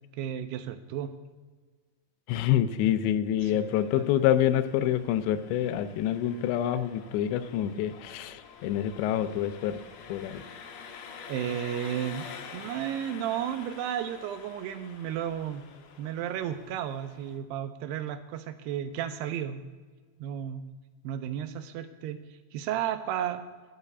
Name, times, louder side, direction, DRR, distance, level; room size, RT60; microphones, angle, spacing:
voice 1, 0.2-1.2 3.4-4.1 11.3-12.3 12.5-15.6 16.0-19.6 20.2-20.6 21.0-22.2 22.5-23.5, right 10 dB, 80° right, 9 dB, 2.5 m, -33 dB
voice 2, 2.3-9.8 10.1-10.4, left 11 dB, 85° left, 12 dB, 2.9 m, -27 dB
Engine, 3.4-17.4, left 6 dB, 70° left, 2.6 m, -47 dB
12.0 x 6.7 x 8.2 m, 1.4 s
omnidirectional pair, 5.0 m